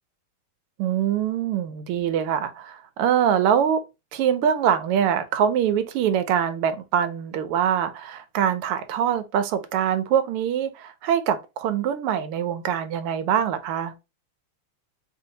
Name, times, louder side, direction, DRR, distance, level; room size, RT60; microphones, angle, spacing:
voice 1, 0.8-3.8 4.1-13.9, right 9 dB, 85° right, 1.6 m, -24 dB
3.7 x 2.7 x 3.8 m
omnidirectional pair, 2.4 m